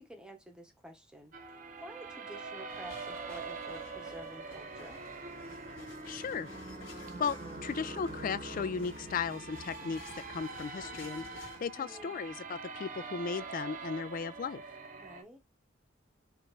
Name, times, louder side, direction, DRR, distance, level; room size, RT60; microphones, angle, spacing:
voice 1, 0.0-1.3 1.8-5.0 11.8-12.2 15.0-15.4, equal, 5° right, 1.1 m, -50 dB
sound 1, 1.3-15.2, right 3 dB, 40° right, 0.9 m, -44 dB
sound 2, 2.7-11.6, left 2 dB, 70° left, 1.7 m, -53 dB
voice 2, 6.1-6.5 7.2-10.0 10.3-14.6, left 5 dB, 45° left, 0.4 m, -36 dB
5.1 x 2.9 x 3.1 m
head